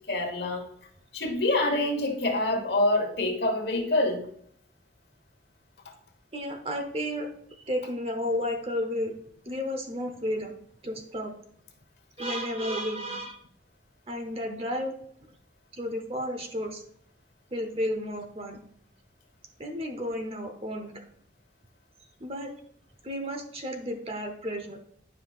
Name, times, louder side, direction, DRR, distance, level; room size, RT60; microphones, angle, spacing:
voice 1, 0.1-0.7 1.1-4.2 5.8-5.9, left 2 dB, 65° left, 3 dB, 1.3 m, -26 dB
voice 2, 6.3-7.3 7.7-9.1 9.5-10.5 10.8-11.3 12.2-13.4 14.1-14.9 15.7-16.8 17.5-18.6 19.6-21.0 22.2-22.5 23.0-24.8, equal, 30° right, 5 dB, 0.9 m, -32 dB
9.7 x 5.6 x 2.4 m, 0.64 s
head